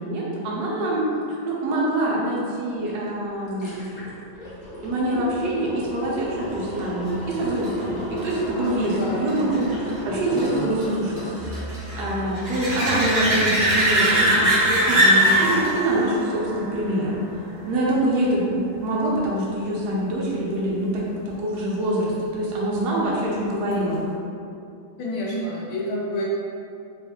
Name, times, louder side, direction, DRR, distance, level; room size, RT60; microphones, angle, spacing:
voice 1, 0.0-4.0 4.8-11.3 11.9-17.2 17.7-24.0, right 1 dB, 60° right, -5 dB, 1.2 m, -25 dB
sound 1, 2.9-3.0 3.3-12.4 12.7-12.8, equal, 40° left, 0.8 m, -34 dB
sound 2, 6.8-18.1 23.7-23.8, right 1 dB, 45° right, 0.8 m, -23 dB
voice 2, 8.6-9.7 25.0-26.2, left 1 dB, 80° left, -5 dB, 1.5 m, -29 dB
3.4 x 3.1 x 3.6 m, 2.5 s
omnidirectional pair, 2.3 m